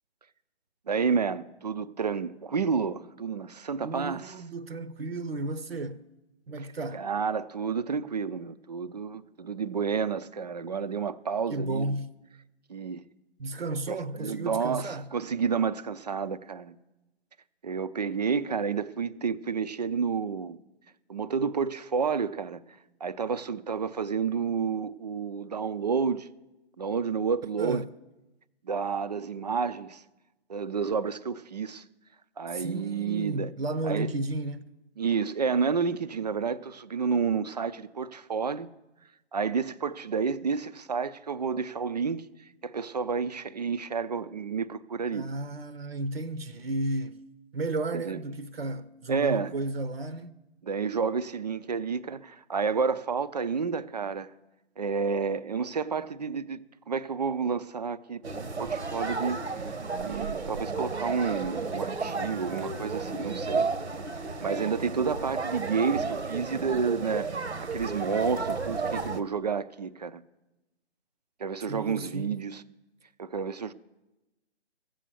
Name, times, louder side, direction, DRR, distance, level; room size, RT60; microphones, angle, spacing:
voice 1, 0.9-4.3 6.9-11.9 12.7-13.0 13.9-16.8 17.6-20.6 21.1-22.6 23.0-26.3 26.8-27.8 28.6-30.0 30.5-31.8 32.4-33.5 33.8-34.1 35.0-38.7 39.3-42.2 42.6-45.3 47.9-48.2 49.1-49.5 50.6-54.3 54.8-58.2 58.6-59.6 60.0-63.7 64.4-70.2 71.4-72.6 73.2-73.7, right 5 dB, 40° right, 0.4 m, -30 dB
voice 2, 3.8-6.0 6.5-7.1 11.5-12.1 13.4-15.1 27.6-27.9 32.5-34.6 45.1-47.2 47.5-50.3 71.7-72.4, right 2 dB, 60° right, 0.8 m, -33 dB
sound 1, 58.2-69.2, right 4 dB, 80° right, 1.1 m, -33 dB
15.0 x 7.6 x 6.9 m
figure-of-eight pair, 140°, 34 cm